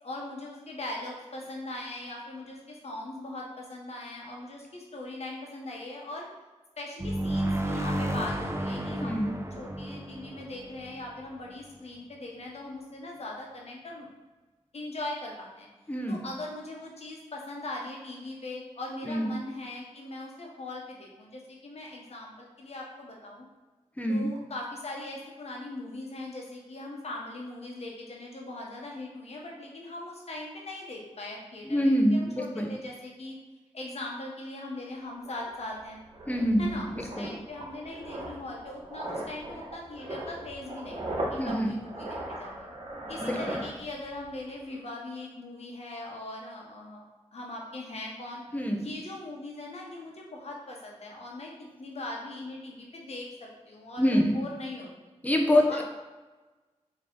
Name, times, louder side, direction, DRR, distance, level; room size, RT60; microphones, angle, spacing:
voice 1, 0.0-6.3 6.8-14.1 14.7-15.7 16.1-23.4 24.1-33.4 33.7-36.0 36.6-42.5 43.1-47.0 47.3-48.4 48.7-54.9 55.7-55.8, left 2 dB, 60° left, -1 dB, 1.2 m, -40 dB
sound 1, 7.0-11.6, right 1 dB, 20° right, 0.6 m, -32 dB
voice 2, 9.0-9.4 15.9-16.2 19.0-19.4 24.0-24.3 31.7-32.7 36.3-37.3 41.4-41.7 43.2-43.6 48.5-48.9 54.0-54.3 55.2-55.8, equal, 10° left, 2 dB, 0.8 m, -26 dB
sound 2, 34.8-34.9 35.2-44.3 44.6-44.8, right 1 dB, 50° right, 1.4 m, -38 dB
3.7 x 3.2 x 3.8 m, 1.2 s
cardioid pair, 45°, 12 cm